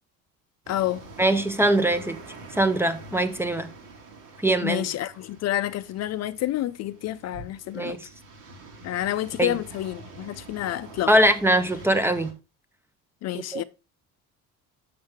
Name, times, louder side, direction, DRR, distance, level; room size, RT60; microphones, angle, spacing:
sound 1, 0.6-12.3, right 2 dB, 60° right, 2.2 m, -45 dB
voice 1, 0.7-1.1 4.6-8.0 8.8-11.1 13.2-13.6, left 13 dB, 50° left, 0.4 m, -29 dB
voice 2, 1.2-2.2 2.5-3.7 4.4-4.9 7.7-8.1 9.4-9.5 11.1-12.4 13.5-13.6, right 1 dB, 5° right, 0.5 m, -22 dB
6.5 x 6.4 x 3.4 m
cardioid pair, 130°, 33 cm